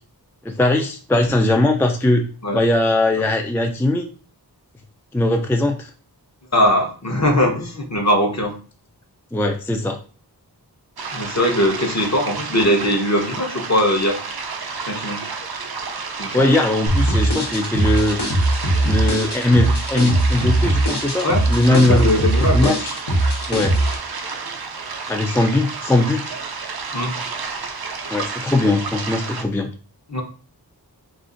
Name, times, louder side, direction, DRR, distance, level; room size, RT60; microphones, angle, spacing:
voice 1, 0.4-2.2 2.5-4.1 5.1-5.9 9.3-10.0 16.3-18.2 18.8-22.1 22.5-23.0 23.5-23.7 25.1-26.2 28.1-29.7, left 2 dB, 5° left, 4 dB, 0.4 m, -19 dB
voice 2, 6.5-8.6 11.1-14.2 14.9-15.2 16.2-16.5 21.2-21.4 21.7-22.8 26.9-27.2 30.1-30.2, left 1 dB, 45° left, 1 dB, 0.8 m, -20 dB
sound 1, 11.0-29.4, right 5 dB, 65° right, 0.6 m, -31 dB
sound 2, 16.9-24.0, right 1 dB, 75° left, 1.1 m, -20 dB
2.5 x 2.5 x 3.8 m, 0.39 s
wide cardioid pair, 45°, 40 cm